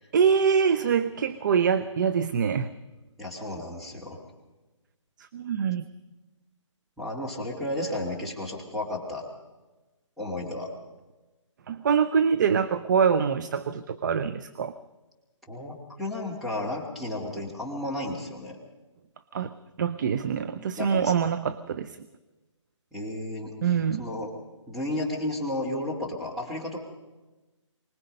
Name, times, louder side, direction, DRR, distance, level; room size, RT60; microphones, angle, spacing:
voice 1, 0.1-2.7 5.3-5.8 11.7-14.7 19.3-22.0 23.6-24.0, right 7 dB, 35° right, 12 dB, 0.6 m, -24 dB
voice 2, 3.2-4.2 7.0-9.3 10.2-10.7 15.5-18.6 20.8-21.1 22.9-24.3 24.7-26.8, left 1 dB, ahead, -4 dB, 2.4 m, -33 dB
24.5 x 20.0 x 5.4 m, 1.2 s
hypercardioid pair, 160°, 16 cm